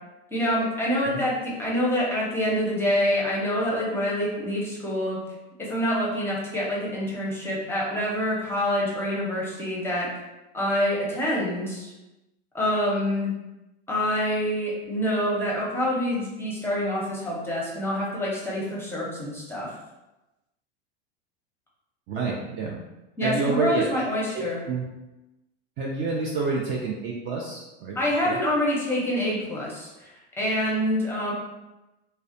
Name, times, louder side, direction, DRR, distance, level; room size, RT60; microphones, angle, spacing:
voice 1, 0.3-5.2 5.6-10.1 10.5-11.9 12.5-13.3 13.9-19.7 23.2-24.6 27.9-31.3, equal, 5° left, -5 dB, 0.7 m, -26 dB
voice 2, 22.1-22.8 23.2-24.0 24.3-24.8 25.8-28.0 28.2-28.4, right 4 dB, 35° right, -2 dB, 0.4 m, -28 dB
2.3 x 2.1 x 2.6 m, 1.0 s
hypercardioid pair, 110°, 32 cm